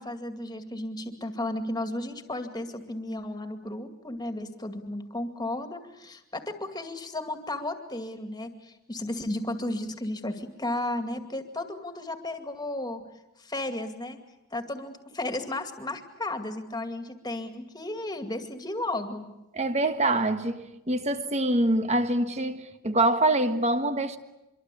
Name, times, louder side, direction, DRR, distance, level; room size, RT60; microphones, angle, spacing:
voice 1, 0.0-13.0 13.4-14.2 14.5-19.3, left 1 dB, 20° left, 2.3 m, -34 dB
voice 2, 19.5-24.2, right 2 dB, 30° right, 1.5 m, -25 dB
25.0 x 23.5 x 8.5 m
head